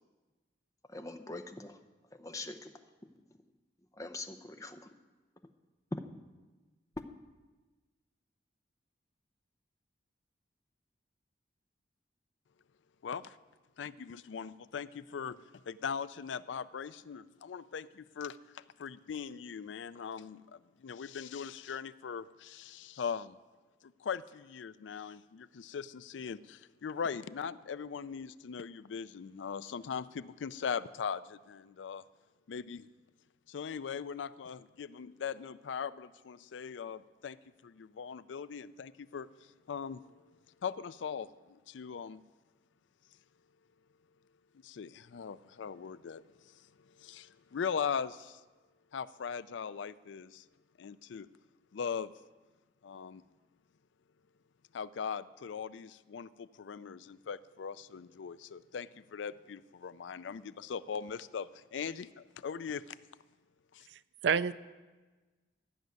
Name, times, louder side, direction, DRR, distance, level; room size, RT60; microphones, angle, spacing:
voice 1, 0.9-1.8 2.1-3.1 3.9-4.9 5.9-6.2, left 2 dB, 20° left, 7 dB, 0.7 m, -43 dB
voice 2, 13.0-13.4 13.8-23.4 23.8-32.0 32.5-32.9 33.5-37.4 37.6-40.2 40.6-42.2 44.6-48.4 48.9-50.4 50.8-51.3 51.7-52.1 52.8-53.2 54.7-63.0 63.7-63.9, left 6 dB, 85° left, 16 dB, 0.4 m, -40 dB
voice 3, 63.9-64.5, right 6 dB, 75° right, 16 dB, 0.4 m, -30 dB
13.0 x 6.4 x 9.2 m, 1.3 s
head